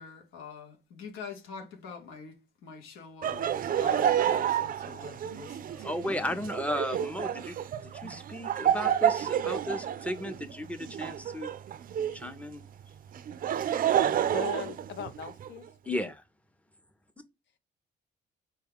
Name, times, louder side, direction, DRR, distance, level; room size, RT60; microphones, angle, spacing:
voice 1, 0.0-6.4, left 5 dB, 90° left, 1.0 m, -45 dB
Laughter, 3.2-12.3 13.1-15.5, right 10 dB, 45° right, 0.4 m, -29 dB
voice 2, 5.7-7.6 7.9-11.5 12.1-12.6 15.8-16.2, left 1 dB, 5° left, 0.6 m, -35 dB
voice 3, 14.3-15.7 15.9-16.1, left 8 dB, 70° left, 0.7 m, -39 dB
4.5 x 2.3 x 3.4 m
cardioid pair, 90°, 20 cm